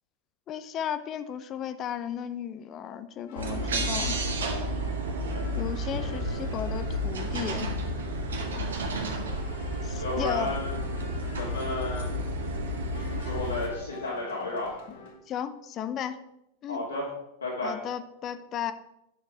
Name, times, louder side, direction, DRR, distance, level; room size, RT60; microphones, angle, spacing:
voice 1, 0.5-4.2 5.5-7.7 9.8-10.6 15.3-16.2 16.6-16.8 17.6-18.7, left 9 dB, 30° left, 12 dB, 0.7 m, -35 dB
sound 1, 3.3-15.2, left 4 dB, 50° left, 1.8 m, -49 dB
sound 2, 3.4-13.7, equal, 65° right, 1.6 m, -31 dB
voice 2, 10.0-10.8 11.4-12.2 13.2-14.7 16.7-17.1 17.4-17.8, left 2 dB, 75° left, -6 dB, 2.4 m, -32 dB
11.0 x 6.8 x 4.9 m, 0.83 s
figure-of-eight pair, 90°, 0 cm